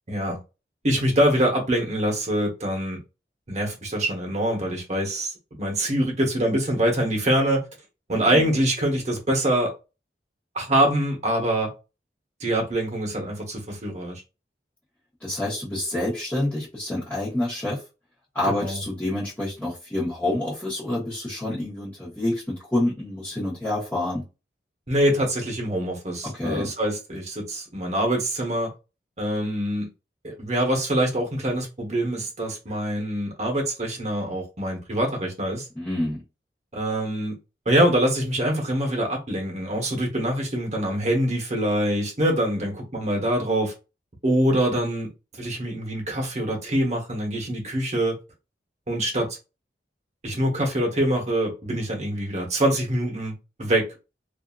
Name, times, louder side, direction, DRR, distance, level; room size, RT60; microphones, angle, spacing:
voice 1, 0.1-0.4 0.8-3.0 3.5-7.6 8.1-9.7 10.5-11.7 12.4-14.2 18.5-18.8 24.9-28.7 29.2-29.9 30.2-35.7 36.7-37.4 37.7-43.7 44.2-45.1 45.4-48.2 48.9-49.4 50.2-53.9, right 1 dB, 40° right, 1.0 m, -24 dB
voice 2, 8.1-8.5 15.2-17.8 18.3-24.2 26.2-26.7 35.7-36.2, left 1 dB, 10° left, 1.1 m, -28 dB
2.7 x 2.5 x 2.3 m
head